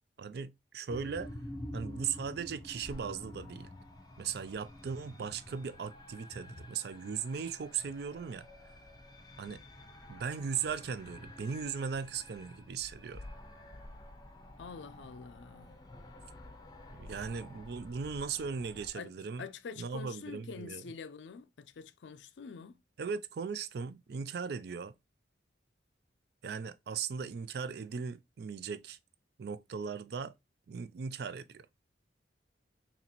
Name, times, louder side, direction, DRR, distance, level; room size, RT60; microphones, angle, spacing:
voice 1, 0.2-1.3 1.7-3.7 4.2-8.5 9.4-9.6 10.1-13.2 16.9-19.5 19.7-20.9 23.0-24.9 26.4-29.0 29.4-30.3 30.7-31.7, right 6 dB, 60° right, 0.4 m, -38 dB
sound 1, 0.9-18.9, left 1 dB, 20° left, 0.6 m, -49 dB
voice 2, 14.6-15.8 18.9-19.1 19.4-22.8, left 5 dB, 80° left, 0.4 m, -46 dB
4.1 x 2.9 x 2.9 m
head